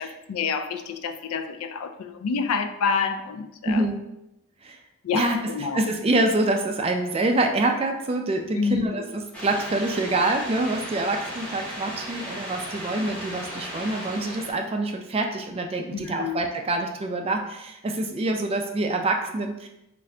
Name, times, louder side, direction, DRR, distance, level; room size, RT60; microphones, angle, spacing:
voice 1, 0.0-3.8 5.0-5.9 8.6-9.2 15.9-16.4, left 5 dB, 85° left, 8 dB, 0.4 m, -28 dB
voice 2, 3.6-4.0 4.6-4.8 5.1-5.4 5.7-19.7, right 2 dB, 25° right, 4 dB, 0.3 m, -26 dB
sound 1, 9.3-14.5, equal, 5° left, 0.8 m, -36 dB
3.7 x 2.5 x 3.2 m, 0.87 s
head